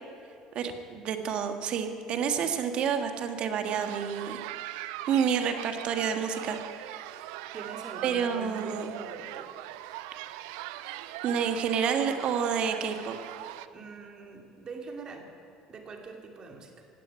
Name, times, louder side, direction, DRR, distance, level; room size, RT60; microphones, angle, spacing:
voice 1, 0.5-7.0 8.0-8.9 11.2-13.2, right 7 dB, 55° right, 7 dB, 1.6 m, -29 dB
sound 1, 3.7-13.7, right 15 dB, 85° right, 0.5 m, -40 dB
voice 2, 7.5-9.5 13.7-15.3 15.7-16.9, right 3 dB, 40° right, 3 dB, 2.7 m, -43 dB
16.0 x 9.0 x 9.5 m, 2.5 s
supercardioid pair, 95°, 2 cm